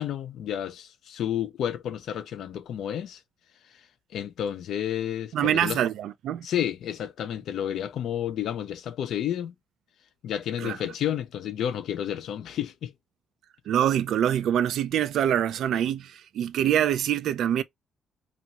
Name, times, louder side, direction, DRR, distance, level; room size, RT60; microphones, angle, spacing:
voice 1, 0.0-3.2 4.1-5.8 6.4-9.5 10.2-12.9, left 10 dB, 75° left, 0.5 m, -31 dB
voice 2, 5.3-6.5 10.6-10.8 13.7-17.6, right 10 dB, 75° right, 0.3 m, -25 dB
2.7 x 2.4 x 2.8 m
cardioid pair, 90°, 0 cm